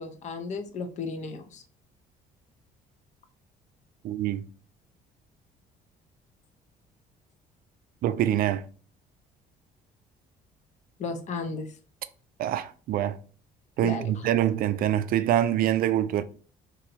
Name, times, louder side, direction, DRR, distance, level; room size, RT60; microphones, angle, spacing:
voice 1, 0.0-1.6 11.0-11.7 13.8-14.2, left 4 dB, 45° left, 0.6 m, -34 dB
voice 2, 4.0-4.4 8.0-8.6 12.4-13.2 13.8-16.2, right 11 dB, 60° right, 0.4 m, -25 dB
2.9 x 2.6 x 4.1 m
cardioid pair, 110°, 17 cm